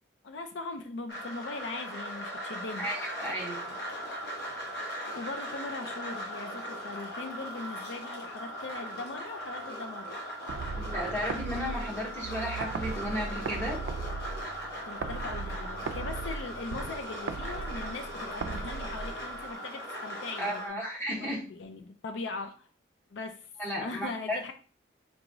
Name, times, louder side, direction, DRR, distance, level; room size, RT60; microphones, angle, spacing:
voice 1, 0.2-2.9 5.1-10.2 14.9-20.8 21.1-22.7 23.1-23.4 23.8-24.5, left 3 dB, 70° left, 7 dB, 0.5 m, -40 dB
sound 1, 1.1-20.7, equal, 55° left, 1.0 m, -39 dB
voice 2, 2.8-3.7 10.8-13.8 20.4-21.4 23.6-24.4, equal, 10° left, -2 dB, 1.0 m, -34 dB
sound 2, 10.5-19.5, right 4 dB, 75° right, 0.3 m, -38 dB
4.6 x 3.0 x 2.6 m, 0.38 s
head